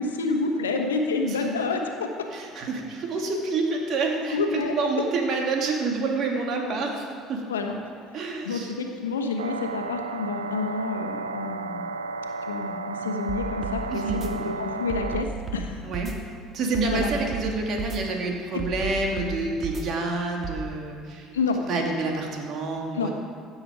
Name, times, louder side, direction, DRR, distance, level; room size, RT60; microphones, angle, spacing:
voice 1, 0.0-2.1 4.3-4.8 7.5-7.7 8.4-11.9 12.5-15.8 16.9-17.1 18.5-18.6 21.3-21.6 22.9-23.1, left 3 dB, 85° left, 4 dB, 1.2 m, -28 dB
voice 2, 2.3-7.4 8.1-8.7 13.9-14.2 15.8-16.1 16.5-21.3 21.7-23.1, right 3 dB, 55° right, 1 dB, 2.4 m, -28 dB
sound 1, 9.4-15.2, right 3 dB, 90° right, 0.4 m, -33 dB
sound 2, 13.3-13.8 14.1-14.3 14.9-15.6 15.9-16.1 16.7-17.5 17.8-18.0 18.6-19.3 19.6-19.8 20.4-20.6, right 6 dB, 40° right, 1.9 m, -33 dB
16.0 x 7.9 x 5.0 m, 2.2 s
hypercardioid pair, 65°, 0 cm